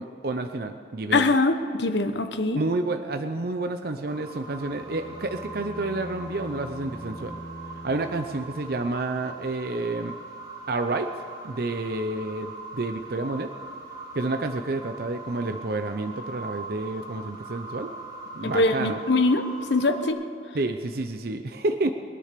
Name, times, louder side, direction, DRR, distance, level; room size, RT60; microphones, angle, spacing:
voice 1, 0.0-1.3 2.5-7.4 7.8-10.2 10.7-11.1 11.4-13.5 14.1-17.9 18.3-19.0 20.5-21.9, right 2 dB, 55° right, 7 dB, 0.6 m, -29 dB
voice 2, 1.1-2.6 18.4-20.2, left 2 dB, 75° left, 8 dB, 1.0 m, -23 dB
sound 1, 4.1-20.1, right 2 dB, 20° right, 2.6 m, -41 dB
sound 2, 4.6-9.0, equal, 20° left, 3.4 m, -43 dB
21.0 x 9.8 x 6.7 m, 2.6 s
head